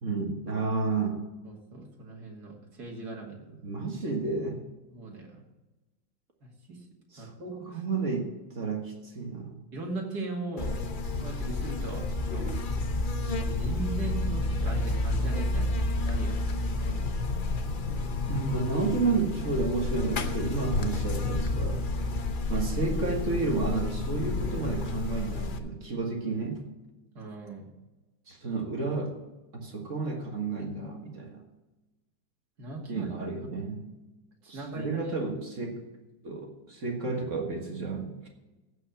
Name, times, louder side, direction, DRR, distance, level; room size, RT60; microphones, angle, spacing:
voice 1, 0.0-1.3 3.6-4.7 7.1-7.3 7.7-9.6 18.3-21.9 22.5-26.6 28.3-29.2 29.5-31.5 32.9-33.9 34.5-35.8 36.2-38.3, right 4 dB, 45° right, 1 dB, 1.9 m, -31 dB
voice 2, 1.4-3.5 4.9-5.4 6.4-6.8 7.2-7.8 9.7-10.8 11.1-12.5 13.2-16.4 27.1-27.7 32.6-33.5 34.4-35.1 35.6-35.8, right 2 dB, 60° right, -1 dB, 2.9 m, -39 dB
Buzz, 10.6-25.6, left 2 dB, 50° left, 0.6 m, -30 dB
15.5 x 5.7 x 7.2 m, 1.1 s
omnidirectional pair, 2.0 m